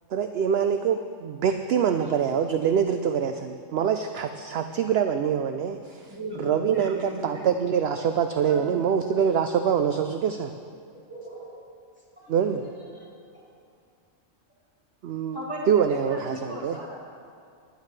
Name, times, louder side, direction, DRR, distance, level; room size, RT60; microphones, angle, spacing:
voice 1, 0.1-6.1 6.5-10.5 12.3-12.6 15.0-15.4 15.7-16.8, right 7 dB, 65° right, 7 dB, 0.7 m, -25 dB
voice 2, 1.9-2.2 3.7-3.8 6.1-7.5 8.4-9.1 11.1-11.7 12.2-13.1 13.3-13.6 15.1-15.2, right 1 dB, 10° right, -8 dB, 3.3 m, -40 dB
voice 3, 15.3-17.0, equal, 20° left, -3 dB, 1.1 m, -36 dB
19.5 x 11.0 x 3.3 m, 2.3 s
omnidirectional pair, 1.3 m